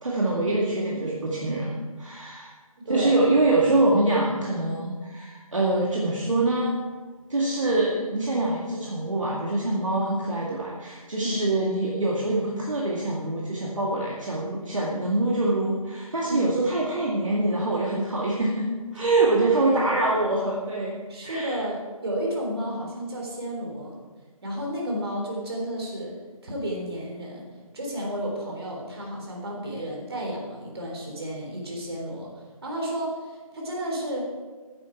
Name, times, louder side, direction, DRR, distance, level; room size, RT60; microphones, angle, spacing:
voice 1, 0.0-1.7 2.0-2.5 2.9-6.8 7.3-20.9 21.2-21.6, right 2 dB, 60° right, -4 dB, 2.1 m, -25 dB
voice 2, 2.9-3.2 11.2-11.4 16.3-16.5 19.3-20.0 21.1-23.9 24.4-26.2 26.4-27.4 27.7-32.3 32.6-34.3, equal, 45° right, -1 dB, 3.7 m, -32 dB
13.5 x 9.9 x 4.6 m, 1.4 s
figure-of-eight pair, 155°, 19 cm